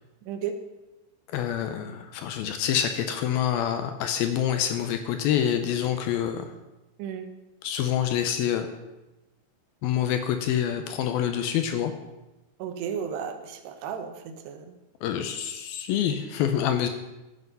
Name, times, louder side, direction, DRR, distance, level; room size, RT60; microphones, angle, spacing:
voice 1, 0.3-0.6 7.0-7.3 12.6-14.8, right 7 dB, 80° right, 7 dB, 3.1 m, -34 dB
voice 2, 1.3-6.5 7.6-8.7 9.8-11.9 15.0-16.9, left 9 dB, 75° left, 7 dB, 2.3 m, -26 dB
13.5 x 8.1 x 5.5 m, 1.0 s
omnidirectional pair, 4.8 m